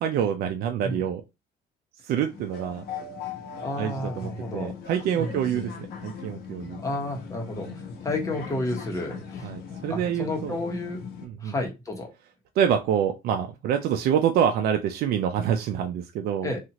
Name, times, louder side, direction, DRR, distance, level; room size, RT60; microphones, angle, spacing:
voice 1, 0.0-1.2 2.0-2.8 3.8-5.7 6.0-6.8 9.4-10.5 11.2-11.5 12.6-16.5, right 9 dB, 70° right, 5 dB, 0.4 m, -26 dB
sound 1, 2.3-11.3, left 6 dB, 70° left, 0.8 m, -39 dB
voice 2, 3.6-4.7 5.1-5.7 6.8-9.5 9.9-11.0 11.4-12.1 16.4-16.6, left 2 dB, 20° left, 0 dB, 1.1 m, -31 dB
2.7 x 2.4 x 2.9 m, 0.24 s
cardioid pair, 110°, 17 cm